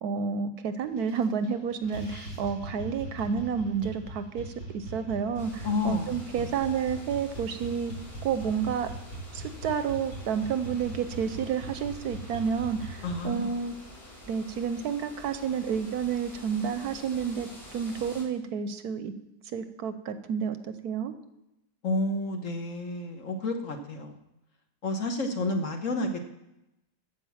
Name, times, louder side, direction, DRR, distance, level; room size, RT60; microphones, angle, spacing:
voice 1, 0.0-7.9 8.2-8.9 9.3-13.8 14.3-19.1 19.5-21.1, right 7 dB, 70° right, 10 dB, 1.1 m, -30 dB
sound 1, 1.0-1.5 1.8-13.1, right 1 dB, 75° left, 3.9 m, -41 dB
sound 2, 5.4-18.2, equal, 35° left, 3.4 m, -48 dB
voice 2, 5.6-6.5 13.0-13.6 21.8-24.2 24.8-26.2, left 2 dB, 50° left, 5 dB, 1.3 m, -30 dB
14.5 x 5.2 x 7.1 m, 0.92 s
omnidirectional pair, 1.9 m